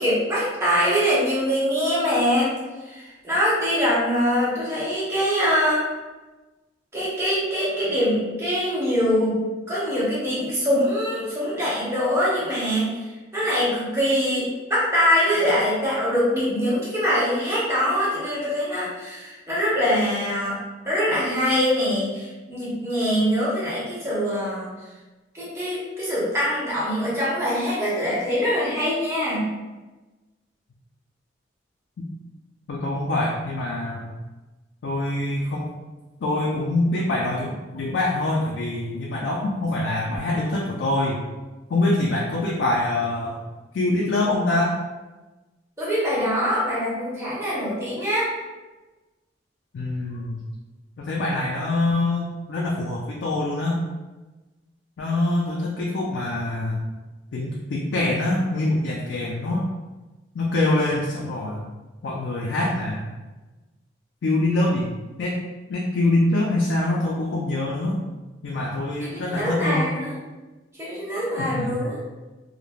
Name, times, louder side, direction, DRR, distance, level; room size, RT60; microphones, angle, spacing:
voice 1, 0.0-2.5 2.8-5.8 6.9-9.4 9.7-20.6 20.8-24.7 25.3-29.5 45.8-48.3 69.0-70.1 70.8-72.0, equal, 15° right, -9 dB, 0.9 m, -23 dB
voice 2, 32.7-34.1 34.8-35.7 36.2-41.2 41.7-43.4 43.7-44.8 49.7-50.4 51.0-53.8 55.0-56.8 57.3-59.7 60.3-61.6 62.0-63.1 64.2-64.9 65.2-65.4 65.7-68.0 68.4-69.9 71.4-71.8, left 2 dB, 75° left, -3 dB, 0.4 m, -24 dB
3.1 x 2.0 x 2.3 m, 1.2 s
head